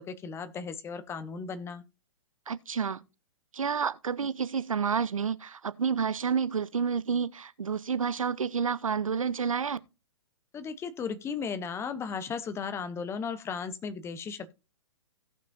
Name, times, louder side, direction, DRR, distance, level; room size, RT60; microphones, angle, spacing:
voice 1, 0.0-1.8 10.5-14.5, left 6 dB, 15° left, 0.8 m, -36 dB
voice 2, 2.5-3.0 3.5-9.8, right 6 dB, 80° right, 0.7 m, -29 dB
17.0 x 6.1 x 2.6 m
figure-of-eight pair, 120°, 17 cm